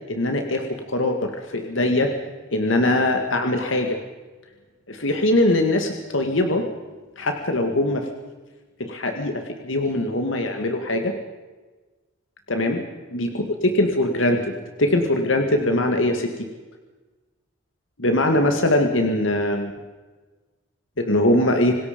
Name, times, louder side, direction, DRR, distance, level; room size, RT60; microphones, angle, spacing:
voice 1, 0.1-2.1 2.5-4.0 4.9-6.7 7.2-8.1 8.8-11.1 12.5-12.8 13.1-16.5 18.0-19.7 21.0-21.8, left 1 dB, 70° left, 4 dB, 2.0 m, -22 dB
26.5 x 19.5 x 5.3 m, 1.3 s
head